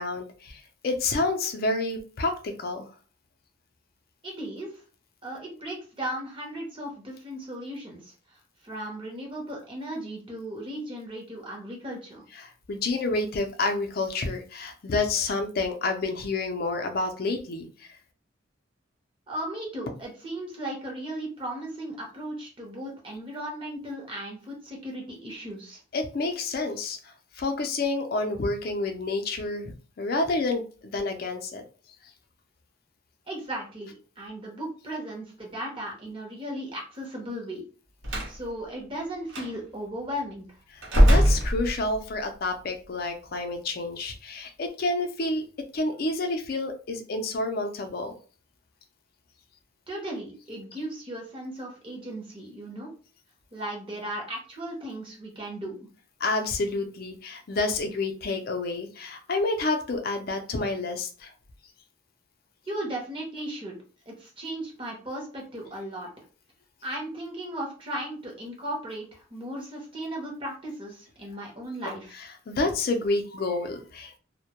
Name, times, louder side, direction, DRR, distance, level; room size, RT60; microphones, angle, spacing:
voice 1, 0.0-2.9 12.4-17.9 25.9-27.0 27.4-31.6 40.7-45.4 45.7-48.1 56.2-61.3 72.2-74.2, left 3 dB, 50° left, 6 dB, 0.4 m, -29 dB
voice 2, 4.2-4.8 5.2-12.2 19.3-25.8 33.3-37.6 38.3-40.5 49.9-52.9 53.5-55.9 62.6-63.8 64.1-66.1 66.8-72.2, right 1 dB, 25° right, -1 dB, 0.7 m, -36 dB
Slam, 38.0-38.4 39.3-39.5 40.8-42.1, equal, 80° right, 0.7 m, -20 dB
2.1 x 2.1 x 2.8 m, 0.38 s
head